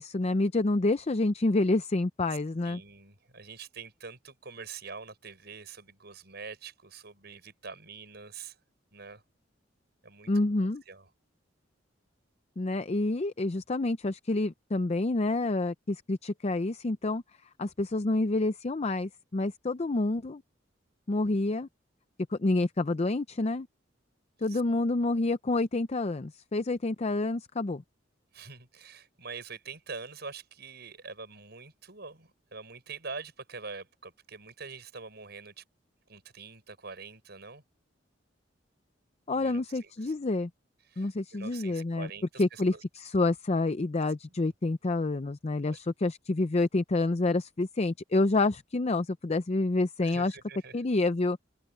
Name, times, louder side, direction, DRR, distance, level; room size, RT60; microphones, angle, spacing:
voice 1, 0.0-2.8 10.3-10.8 12.6-17.2 17.6-20.4 21.1-21.7 22.3-23.7 24.4-27.8 39.3-40.5 41.0-42.1 42.4-50.4 50.7-51.4, left 2 dB, 35° left, 0.6 m, -28 dB
voice 2, 2.6-8.6 8.9-9.2 10.0-10.3 10.9-11.1 24.5-24.6 28.3-35.6 36.1-37.6 39.3-40.2 40.9-42.8 44.4-44.5 45.6-45.8 50.0-50.8, right 4 dB, 60° right, 7.0 m, -45 dB
head